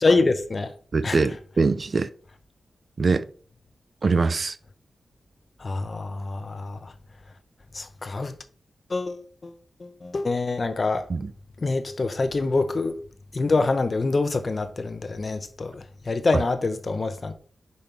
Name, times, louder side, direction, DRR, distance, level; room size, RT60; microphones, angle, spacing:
voice 1, 0.0-0.7 1.0-1.2 5.6-6.9 7.7-8.3 8.9-11.1 11.6-13.0 13.3-17.3, left 3 dB, 35° left, 0.7 m, -25 dB
voice 2, 0.9-2.1 3.0-3.2 4.0-4.6 11.1-11.3 16.3-16.4, right 4 dB, 40° right, 0.4 m, -23 dB
5.4 x 5.3 x 4.4 m
wide cardioid pair, 160°, 0 cm